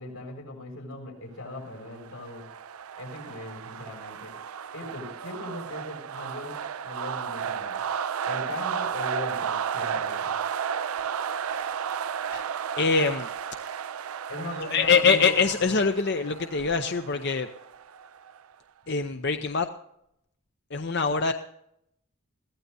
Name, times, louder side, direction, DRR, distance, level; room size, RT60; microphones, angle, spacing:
voice 1, 0.0-2.4 2.9-4.3 4.7-6.6 6.8-7.8 8.3-10.4 14.3-15.5, left 1 dB, 90° left, 0 dB, 6.7 m, -39 dB
sound 1, 1.7-18.4, right 7 dB, 80° right, 0.5 m, -33 dB
voice 2, 12.8-13.3 14.7-17.5 18.9-19.7 20.7-21.3, left 5 dB, 50° left, 7 dB, 0.7 m, -23 dB
22.0 x 16.0 x 2.7 m, 0.77 s
head